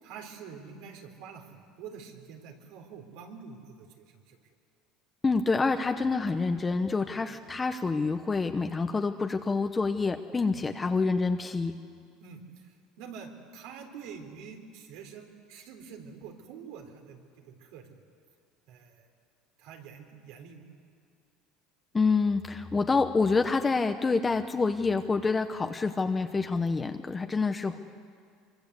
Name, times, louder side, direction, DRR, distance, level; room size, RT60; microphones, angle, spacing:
voice 1, 0.0-4.4 7.1-7.3 10.5-10.7 12.2-17.2 17.5-17.9 18.7-19.1 19.6-20.7, right 6 dB, 75° right, 4 dB, 3.9 m, -46 dB
voice 2, 5.2-11.7 21.9-27.8, left 4 dB, 15° left, 7 dB, 0.9 m, -27 dB
24.5 x 24.0 x 8.2 m, 2.2 s
cardioid pair, 135°, 0 cm